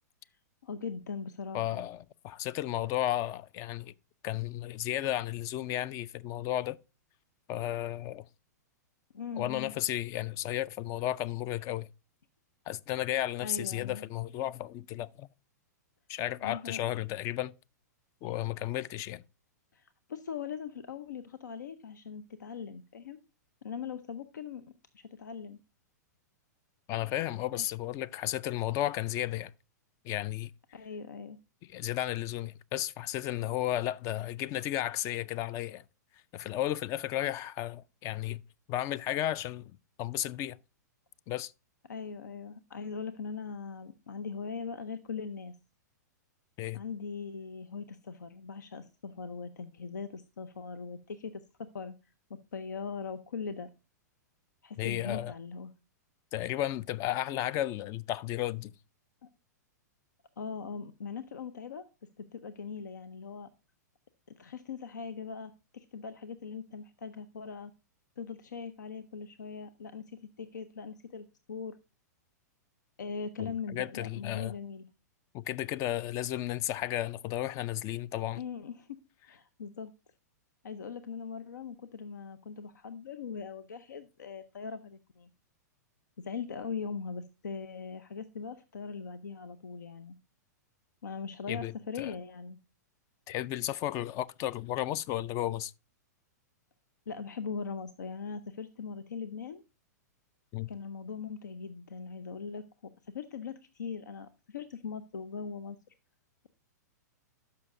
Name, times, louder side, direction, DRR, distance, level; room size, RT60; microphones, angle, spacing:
voice 1, 0.6-1.8 9.1-9.7 13.4-14.0 16.4-16.8 19.7-23.2 23.6-25.6 27.5-27.7 30.7-31.4 41.9-45.5 46.7-51.3 51.6-51.9 52.3-53.7 54.6-55.7 59.2-59.3 60.4-61.9 62.2-63.5 64.3-67.7 68.2-71.8 73.0-74.9 78.3-79.0 79.2-79.9 80.6-85.3 86.2-90.1 91.0-92.6 97.1-99.6 100.7-105.8, left 5 dB, 85° left, 0.6 m, -40 dB
voice 2, 1.5-3.9 4.2-6.8 7.5-8.3 9.4-11.9 12.7-15.3 16.1-17.5 18.2-19.2 26.9-29.5 30.0-30.5 31.7-35.8 36.3-38.4 38.7-39.7 40.0-40.6 41.3-41.5 46.6-46.8 54.8-55.3 56.3-58.7 73.4-74.6 75.3-78.4 91.5-92.1 93.3-95.7 100.5-100.7, left 13 dB, 35° left, 0.3 m, -33 dB
12.0 x 5.7 x 2.5 m
hypercardioid pair, 115°, 10 cm